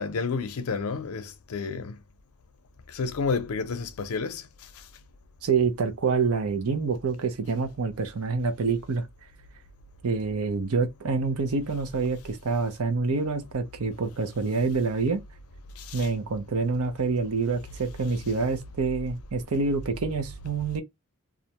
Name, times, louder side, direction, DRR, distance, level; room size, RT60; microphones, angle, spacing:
voice 1, 0.0-2.0 2.9-4.4 15.8-16.1, left 4 dB, 85° left, 0.5 m, -30 dB
voice 2, 5.4-9.1 10.0-15.2 15.9-20.8, right 4 dB, 85° right, 0.6 m, -27 dB
2.4 x 2.1 x 2.8 m
head